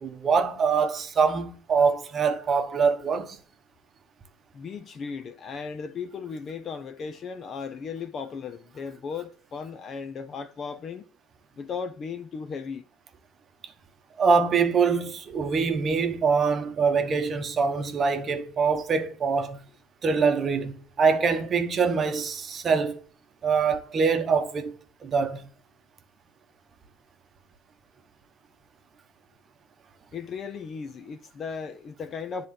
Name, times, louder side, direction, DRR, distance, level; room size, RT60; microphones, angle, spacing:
voice 1, 0.0-3.4 14.2-19.6 20.0-23.0 23.4-24.7 25.0-25.5, right 5 dB, 25° right, 1.0 m, -24 dB
voice 2, 4.5-11.1 11.6-12.8 30.1-32.5, left 5 dB, 30° left, 0.6 m, -36 dB
10.0 x 3.7 x 7.0 m
cardioid pair, 150°, 0 cm